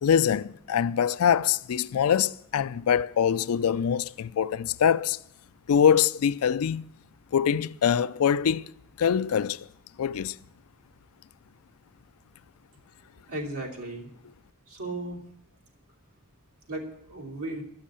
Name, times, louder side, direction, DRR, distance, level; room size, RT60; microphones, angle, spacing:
voice 1, 0.0-5.2 5.7-6.8 7.3-8.7 9.0-9.7 10.0-10.4, left 8 dB, 70° left, 0.4 m, -24 dB
voice 2, 13.3-14.1 14.7-15.2 16.7-17.6, right 2 dB, 75° right, 3.0 m, -35 dB
12.0 x 6.4 x 8.6 m
head